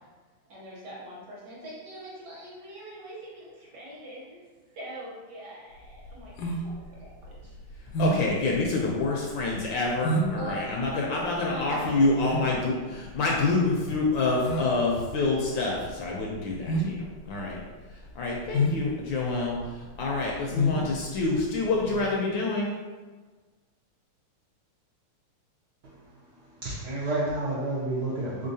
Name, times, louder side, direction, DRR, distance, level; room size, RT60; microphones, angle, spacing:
voice 1, 0.5-4.4 4.7-6.6 7.0-7.5 10.3-10.6 11.0-11.1 11.5-12.4 12.6-13.1, right 1 dB, 60° right, -6 dB, 1.3 m, -42 dB
sound 1, 5.8-22.1, equal, 90° left, 1.6 m, -31 dB
voice 2, 8.0-17.6 18.2-22.7, left 3 dB, 75° left, -2 dB, 1.2 m, -27 dB
voice 3, 26.4-28.5, right 2 dB, 75° right, -7 dB, 1.0 m, -30 dB
3.7 x 3.6 x 2.7 m, 1.4 s
omnidirectional pair, 2.4 m